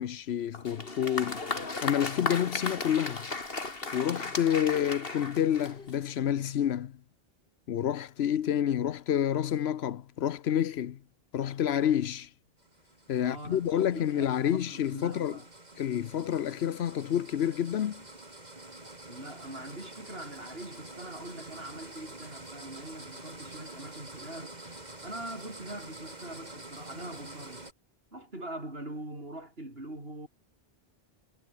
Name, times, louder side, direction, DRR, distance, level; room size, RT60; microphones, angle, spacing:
voice 1, 0.0-1.4 1.8-3.3 3.9-7.0 7.7-11.0 11.3-12.3 13.1-15.4 15.8-18.0, left 10 dB, 85° left, 1.0 m, -29 dB
Applause, 0.5-6.1, left 3 dB, 65° left, 2.9 m, -35 dB
sound 1, 12.6-27.7, right 2 dB, 45° right, 3.7 m, -47 dB
voice 2, 13.2-15.5 19.1-24.6 25.0-27.7 28.1-30.3, right 1 dB, 70° right, 6.8 m, -43 dB
omnidirectional pair, 1.0 m